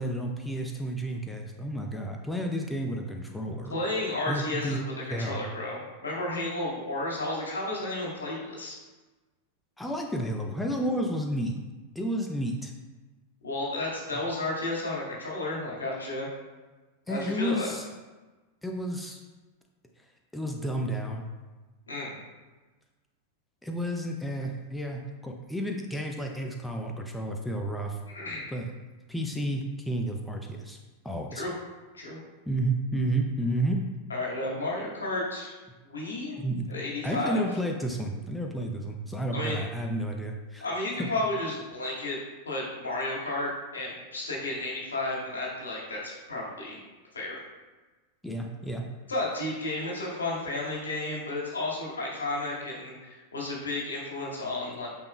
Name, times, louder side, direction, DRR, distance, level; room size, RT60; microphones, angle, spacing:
voice 1, 0.0-3.7 4.3-4.8 5.1-5.5 9.8-11.6 11.9-12.7 17.1-17.9 18.6-19.2 20.3-21.2 23.6-28.0 28.5-28.7 29.1-30.8 31.0-31.4 32.5-33.8 36.4-36.7 37.0-40.7 41.0-41.1 48.2-48.8, right 1 dB, 5° left, 1 dB, 0.6 m, -31 dB
voice 2, 3.7-8.8 13.4-16.3 17.1-17.7 21.9-22.1 28.1-28.5 31.3-31.5 31.9-32.2 34.1-35.5 35.8-36.4 36.7-37.4 39.3-39.6 40.6-42.2 42.5-46.8 47.1-47.4 49.1-54.9, left 2 dB, 75° left, -5 dB, 2.1 m, -32 dB
8.6 x 6.1 x 2.3 m, 1.2 s
figure-of-eight pair, 90°, 0 cm